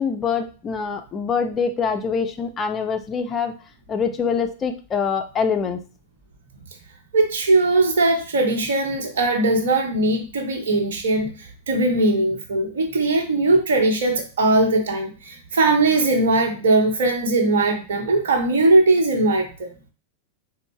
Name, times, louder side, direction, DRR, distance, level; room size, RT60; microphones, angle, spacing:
voice 1, 0.0-3.5 3.9-5.8, left 6 dB, 25° left, 8 dB, 0.4 m, -24 dB
voice 2, 7.1-11.3 11.7-19.7, right 2 dB, 60° right, 2 dB, 0.9 m, -20 dB
3.9 x 2.1 x 3.3 m, 0.35 s
figure-of-eight pair, 90°, 0 cm